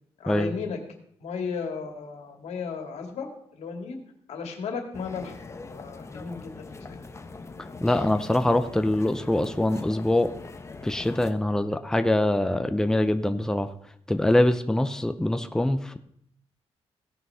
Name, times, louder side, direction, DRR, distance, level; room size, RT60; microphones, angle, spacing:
voice 1, 0.2-0.8 1.2-3.3 3.6-4.0 4.3-5.4 5.8-7.0, left 5 dB, 90° left, 4 dB, 2.2 m, -34 dB
sound 1, 4.9-11.3, left 3 dB, 25° left, 1.0 m, -42 dB
voice 2, 7.8-10.3 10.8-13.7 14.1-16.0, left 1 dB, 5° left, 9 dB, 0.7 m, -24 dB
16.5 x 6.0 x 5.6 m, 0.67 s
cardioid pair, 120°, 11 cm